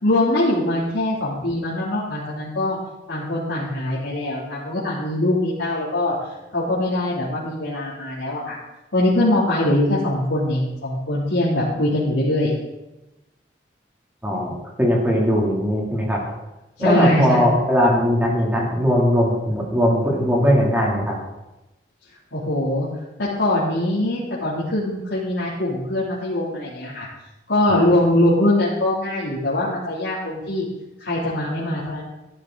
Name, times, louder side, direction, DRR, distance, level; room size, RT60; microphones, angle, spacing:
voice 1, 0.0-2.8 3.1-6.2 6.5-8.6 8.9-12.5 16.8-17.5 22.3-22.9 23.2-27.1 27.5-30.6 31.0-32.0, left 1 dB, 80° left, -9 dB, 3.1 m, -22 dB
voice 2, 14.2-14.5 14.8-16.2 16.8-21.2 27.7-27.8, equal, 10° right, -3 dB, 2.9 m, -19 dB
13.5 x 11.5 x 4.0 m, 0.99 s
head